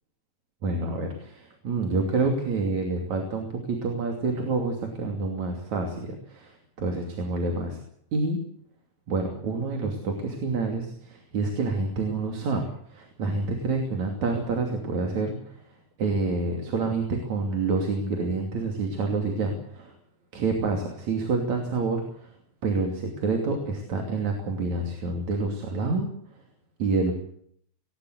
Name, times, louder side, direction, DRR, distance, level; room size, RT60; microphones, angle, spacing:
voice 1, 0.6-7.8 8.1-8.4 9.1-15.6 16.0-19.9 20.3-22.3 22.6-26.1 26.8-27.1, right 3 dB, 75° right, 3 dB, 4.1 m, -28 dB
20.0 x 18.5 x 8.2 m, 0.65 s
omnidirectional pair, 3.3 m